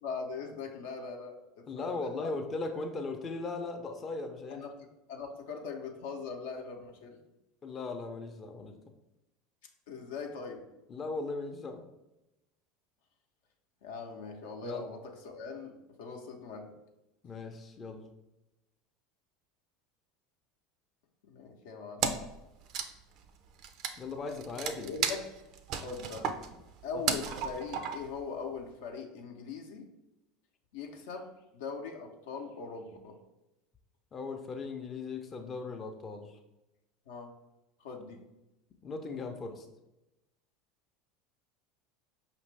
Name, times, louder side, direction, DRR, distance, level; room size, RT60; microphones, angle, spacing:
voice 1, 0.0-2.3 4.5-4.7 5.1-7.2 9.9-10.6 13.8-16.7 21.2-22.1 24.8-25.2 25.7-26.4 26.8-29.9 30.7-33.2 37.1-37.4 37.8-38.2, left 4 dB, 75° left, 2 dB, 0.6 m, -41 dB
voice 2, 1.7-4.6 7.6-8.8 10.9-11.8 14.6-14.8 17.2-18.1 24.0-24.9 34.1-36.4 38.8-39.7, left 3 dB, 35° left, 4 dB, 0.5 m, -38 dB
Wood, 22.0-22.4 22.6-28.2, right 7 dB, 55° right, 0.4 m, -34 dB
5.0 x 2.5 x 3.2 m, 0.95 s
hypercardioid pair, 80°, 0 cm